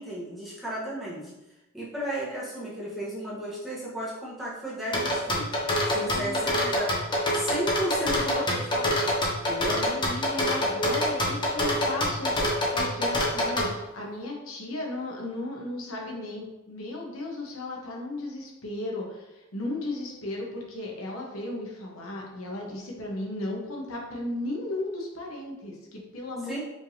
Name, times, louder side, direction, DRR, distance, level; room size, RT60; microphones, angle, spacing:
voice 1, 0.0-1.3 1.7-5.5 5.8-6.9 7.3-9.1 9.5-9.8 26.4-26.6, right 1 dB, ahead, -8 dB, 0.9 m, -34 dB
sound 1, 4.9-13.7, left 1 dB, 20° left, 0.6 m, -25 dB
voice 2, 5.9-6.8 9.7-26.6, left 2 dB, 85° left, -1 dB, 0.9 m, -35 dB
5.0 x 3.4 x 2.7 m, 0.99 s
head